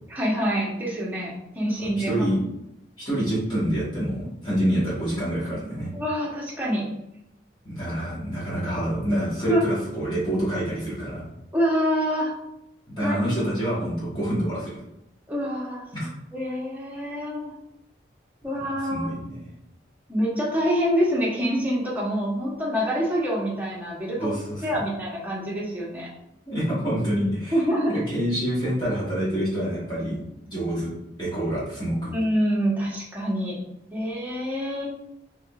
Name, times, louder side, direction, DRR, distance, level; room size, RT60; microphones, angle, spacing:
voice 1, 0.1-2.1 5.9-6.9 9.5-9.6 11.5-12.3 13.0-13.2 15.3-17.5 18.4-19.1 20.1-24.3 24.6-26.1 27.5-28.0 32.1-33.6 33.9-34.9, equal, 10° right, -6 dB, 0.9 m, -26 dB
voice 2, 1.8-2.4 3.0-5.9 7.6-11.2 13.0-14.8 15.9-16.1 18.6-19.1 24.2-24.7 26.5-27.6 27.9-30.2 30.5-30.9 31.2-32.1, right 1 dB, 25° left, -9 dB, 1.3 m, -27 dB
3.6 x 3.5 x 2.3 m, 0.83 s
head